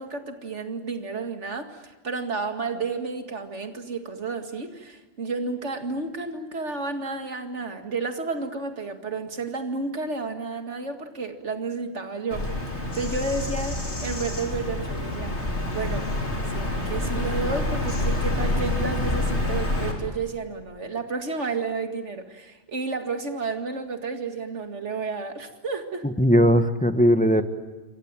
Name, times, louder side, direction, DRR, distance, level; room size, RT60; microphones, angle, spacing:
voice 1, 0.0-16.1 16.5-26.0, right 4 dB, 85° right, 6 dB, 2.4 m, -31 dB
Bird vocalization bird call bird song, 12.3-19.9, left 2 dB, 75° left, 4.4 m, -27 dB
voice 2, 26.0-27.4, equal, 5° left, 9 dB, 1.3 m, -19 dB
28.0 x 23.5 x 9.0 m, 1.1 s
omnidirectional pair, 1.2 m